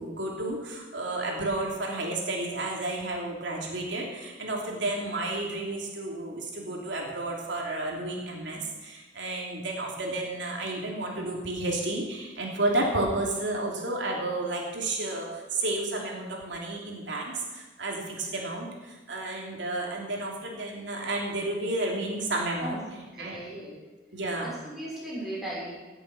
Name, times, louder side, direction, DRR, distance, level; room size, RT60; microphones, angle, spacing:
voice 1, 0.0-22.8 23.2-23.4 24.1-24.6, right 2 dB, 85° right, -1 dB, 3.1 m, -31 dB
voice 2, 23.1-23.8 24.4-25.7, right 1 dB, ahead, -7 dB, 6.3 m, -37 dB
17.5 x 8.1 x 7.2 m, 1.2 s
head